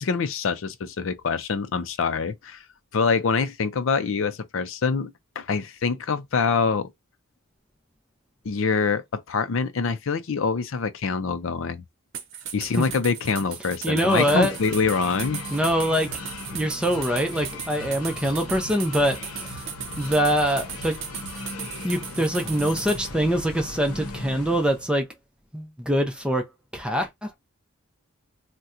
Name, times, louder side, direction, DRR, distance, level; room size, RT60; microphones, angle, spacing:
voice 1, 0.0-2.6 2.9-5.1 5.4-6.9 8.4-11.8 12.5-15.4, left 5 dB, 60° left, 0.4 m, -25 dB
sound 1, 12.1-23.0, right 8 dB, 55° right, 0.8 m, -37 dB
voice 2, 13.8-14.6 15.5-16.1 16.5-19.5 20.0-21.0 21.8-25.1 25.5-26.5 26.7-27.4, equal, 5° right, 0.5 m, -24 dB
sound 2, 14.1-24.9, left 2 dB, 80° left, 0.8 m, -38 dB
2.8 x 2.2 x 3.6 m
head